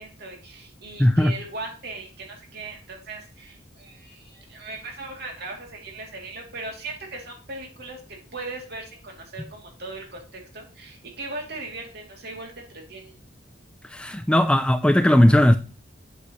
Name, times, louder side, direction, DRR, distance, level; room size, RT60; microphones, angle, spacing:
voice 1, 0.0-13.1, right 2 dB, 55° right, 2.7 m, -38 dB
voice 2, 1.0-1.3 13.9-15.6, left 1 dB, 5° left, 0.3 m, -17 dB
8.2 x 8.1 x 3.0 m
head